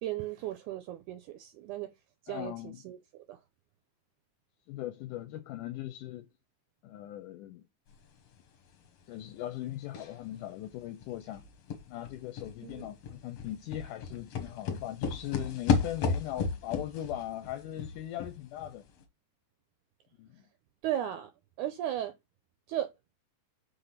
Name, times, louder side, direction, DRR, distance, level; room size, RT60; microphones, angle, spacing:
voice 1, 0.0-1.9 2.2-3.4 12.6-12.8 20.8-21.3 21.6-22.1 22.7-22.9, right 12 dB, 80° right, 1.8 m, -36 dB
voice 2, 2.3-2.8 4.7-6.3 6.8-7.6 9.1-11.4 11.9-18.8 20.2-20.5, left 13 dB, 80° left, 2.0 m, -39 dB
sound 1, 9.9-10.3 10.6-10.7 11.0-18.8 19.0-19.1, left 5 dB, 60° left, 1.8 m, -34 dB
5.8 x 3.5 x 5.7 m
omnidirectional pair, 4.0 m